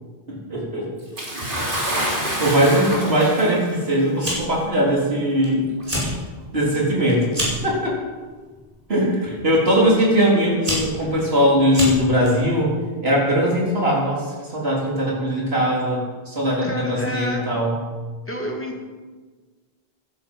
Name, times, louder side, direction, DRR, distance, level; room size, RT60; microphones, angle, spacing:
voice 1, 0.5-0.9 2.4-5.7 6.5-7.3 7.6-8.0 8.9-17.7, equal, 75° right, -4 dB, 4.2 m, -20 dB
Bathtub (filling or washing) / Splash splatter, 1.2-3.8 4.7-4.8 5.8-5.9, equal, 55° right, 3.3 m, -26 dB
Fire, 4.2-4.7 5.0-5.5 5.8-6.1 6.5-7.7 8.5-8.8 9.7-9.8 10.3-12.3, equal, 35° right, 5.1 m, -27 dB
voice 2, 16.6-17.5 18.3-18.9, equal, 10° left, 0 dB, 2.5 m, -29 dB
16.0 x 11.5 x 5.5 m, 1.4 s
omnidirectional pair, 1.0 m